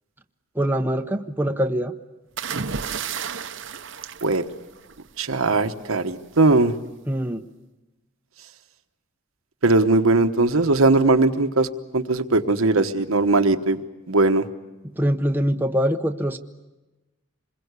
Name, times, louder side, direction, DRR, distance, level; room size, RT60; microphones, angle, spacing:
voice 1, 0.5-1.9 7.1-7.4 14.9-16.4, equal, 10° right, 5 dB, 0.8 m, -23 dB
sound 1, 2.4-5.1 6.4-6.7, right 6 dB, 60° right, 0.8 m, -32 dB
voice 2, 5.2-6.7 9.6-11.7 11.9-13.8 14.1-14.5, right 2 dB, 85° right, 7 dB, 1.2 m, -19 dB
26.5 x 22.0 x 8.2 m, 1.1 s
head